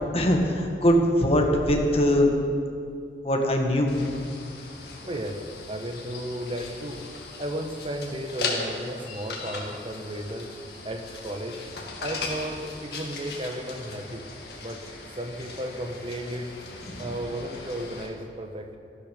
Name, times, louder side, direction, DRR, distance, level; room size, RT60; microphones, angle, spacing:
voice 1, 0.1-2.3 3.2-4.0 16.9-17.1, equal, 35° left, 2 dB, 1.6 m, -22 dB
sound 1, 3.9-18.1, left 3 dB, 65° left, 2.1 m, -38 dB
voice 2, 5.0-7.1 7.4-10.5 10.8-11.6 12.0-14.3 14.6-14.8 15.1-16.5 17.0-18.8, right 1 dB, 30° right, 5 dB, 1.1 m, -34 dB
14.0 x 12.0 x 5.2 m, 2.3 s
head